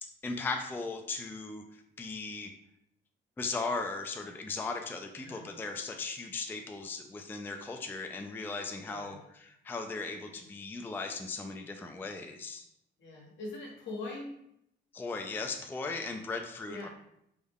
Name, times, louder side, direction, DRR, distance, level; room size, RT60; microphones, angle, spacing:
voice 1, 0.0-2.5 3.4-12.7 14.9-16.9, left 3 dB, 10° left, 4 dB, 0.3 m, -37 dB
voice 2, 5.1-5.5 8.9-9.2 13.0-14.3 16.7-16.9, left 2 dB, 70° left, -1 dB, 1.1 m, -42 dB
3.5 x 2.1 x 3.5 m, 0.76 s
cardioid pair, 90°, 20 cm